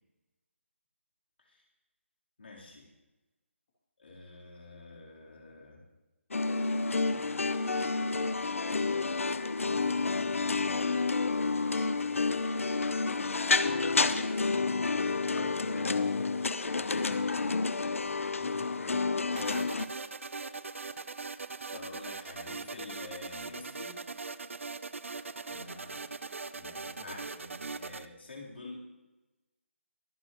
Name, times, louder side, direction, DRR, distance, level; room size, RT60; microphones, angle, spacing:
voice 1, 2.4-2.9 4.0-5.8 10.2-12.4 16.8-17.2 19.4-20.1 21.7-24.0 26.5-27.3 27.7-28.8, left 3 dB, 55° left, -4 dB, 3.7 m, -48 dB
sound 1, 6.3-19.9, left 4 dB, 80° left, 0.8 m, -29 dB
voice 2, 15.2-16.5 18.4-19.0 25.5-26.0 26.7-27.9, left 2 dB, 25° left, -7 dB, 2.7 m, -47 dB
sound 2, 19.3-28.1, right 4 dB, 70° right, 0.6 m, -41 dB
23.0 x 9.4 x 3.1 m, 1.1 s
hypercardioid pair, 180°, 7 cm